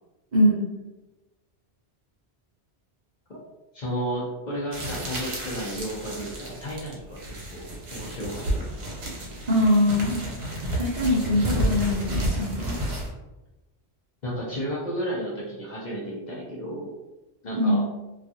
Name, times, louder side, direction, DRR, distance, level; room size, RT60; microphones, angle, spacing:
voice 1, 0.3-0.7 9.5-10.2 10.7-12.8 17.5-17.9, left 1 dB, 50° right, -6 dB, 0.6 m, -22 dB
voice 2, 3.7-8.8 14.2-16.9 17.4-17.8, equal, 50° left, -5 dB, 0.7 m, -33 dB
sound 1, 4.7-13.1, right 1 dB, 70° right, 1.0 m, -31 dB
2.4 x 2.3 x 2.7 m, 1.0 s
omnidirectional pair, 1.1 m